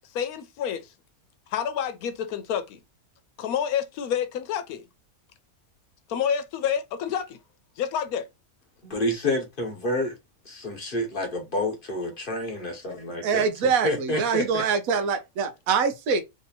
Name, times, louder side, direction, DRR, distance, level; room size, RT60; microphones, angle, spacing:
voice 1, 0.1-0.8 1.5-2.8 3.4-4.8 6.1-7.4 7.8-8.3, left 8 dB, 85° left, 1.1 m, -28 dB
voice 2, 8.8-10.1 10.5-13.5 13.8-14.6, left 1 dB, 40° left, 1.1 m, -29 dB
voice 3, 13.2-16.2, right 5 dB, 75° right, 1.1 m, -24 dB
3.1 x 2.8 x 4.0 m
omnidirectional pair, 1.5 m